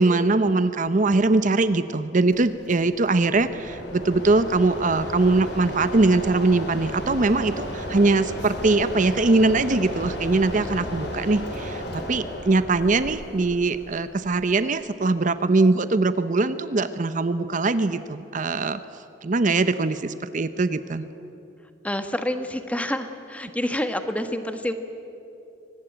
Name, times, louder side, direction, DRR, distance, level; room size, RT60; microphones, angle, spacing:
voice 1, 0.0-18.8 19.2-21.0, right 3 dB, 45° right, 12 dB, 0.7 m, -22 dB
Mechanisms, 2.3-14.7, left 1 dB, 65° left, 4.5 m, -34 dB
voice 2, 21.8-24.7, left 1 dB, 10° left, 8 dB, 1.3 m, -28 dB
24.0 x 19.5 x 9.1 m, 2.8 s
head